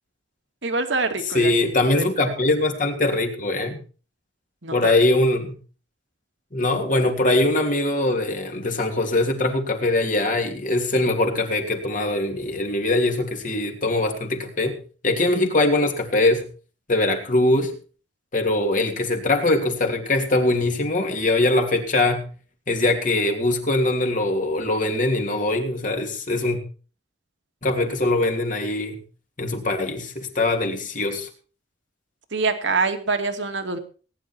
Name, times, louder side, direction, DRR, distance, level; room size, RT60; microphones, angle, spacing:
voice 1, 0.6-1.5 1.9-2.0 4.6-4.7 32.3-33.8, right 3 dB, 70° right, 6 dB, 2.4 m, -24 dB
voice 2, 1.3-3.8 4.7-5.6 6.5-14.8 15.0-16.4 16.9-17.7 18.3-22.3 22.7-26.6 27.6-29.0 29.4-31.3, left 2 dB, 45° left, 3 dB, 2.9 m, -22 dB
19.0 x 10.5 x 4.5 m, 0.38 s
head